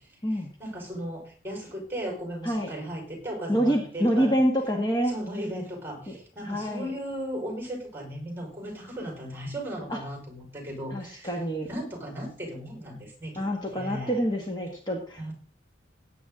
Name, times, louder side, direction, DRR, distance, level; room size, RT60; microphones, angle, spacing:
voice 1, 0.3-4.4 5.1-11.4 11.7-13.5 13.7-14.2 15.2-15.3, equal, 10° right, 2 dB, 5.3 m, -36 dB
voice 2, 3.5-5.2 6.1-6.2 6.4-6.9 9.9-10.0 10.9-11.7 13.4-15.3, equal, 20° left, 1 dB, 1.7 m, -26 dB
17.0 x 9.2 x 3.9 m, 0.43 s
head